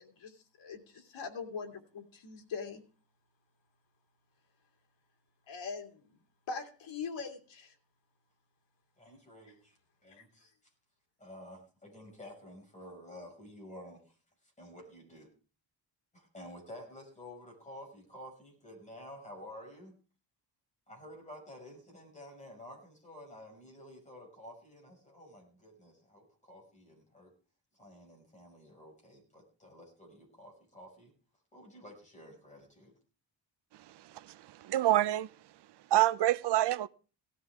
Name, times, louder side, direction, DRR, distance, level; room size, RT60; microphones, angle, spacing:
voice 1, 0.0-2.8 5.5-6.1 6.5-7.7 10.2-10.3, left 5 dB, 85° left, 2.5 m, -42 dB
voice 2, 9.0-9.8 10.0-10.5 11.2-14.0 14.6-15.3 16.1-19.9 20.9-27.3 27.8-31.1 31.5-32.9, left 1 dB, 15° left, 5.7 m, -51 dB
voice 3, 34.6-35.3 35.9-36.9, right 13 dB, 65° right, 0.6 m, -26 dB
17.5 x 13.5 x 3.6 m
wide cardioid pair, 155°, 44 cm